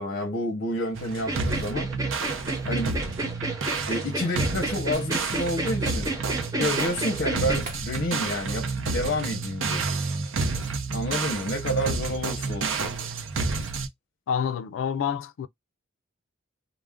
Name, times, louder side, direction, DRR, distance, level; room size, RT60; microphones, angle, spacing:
voice 1, 0.0-2.1 2.6-3.0 3.9-6.1 6.6-9.9 10.9-12.9, left 1 dB, 50° left, 0.7 m, -29 dB
sound 1, 0.9-13.9, right 4 dB, 70° right, 0.5 m, -30 dB
sound 2, 1.2-7.6, right 2 dB, 15° right, 0.5 m, -32 dB
Shatter, 4.9-5.6 6.0-6.1 7.6-8.4 8.7-8.9 10.4-11.1 11.5-11.6, right 2 dB, 40° right, 0.9 m, -45 dB
voice 2, 14.3-15.5, left 7 dB, 70° left, 0.3 m, -28 dB
2.4 x 2.0 x 3.4 m
head